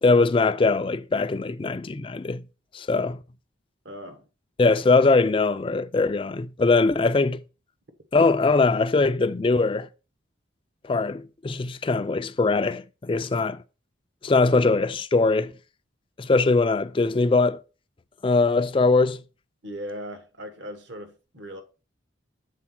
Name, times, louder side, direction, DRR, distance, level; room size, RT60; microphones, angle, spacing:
voice 1, 0.0-2.4 2.7-3.2 4.6-7.4 8.1-9.9 10.9-13.6 14.2-15.5 16.2-17.6 18.2-19.2, left 3 dB, 25° left, 0.3 m, -21 dB
voice 2, 3.8-4.2 19.6-21.6, equal, 65° right, 1.3 m, -38 dB
7.3 x 4.0 x 5.9 m
head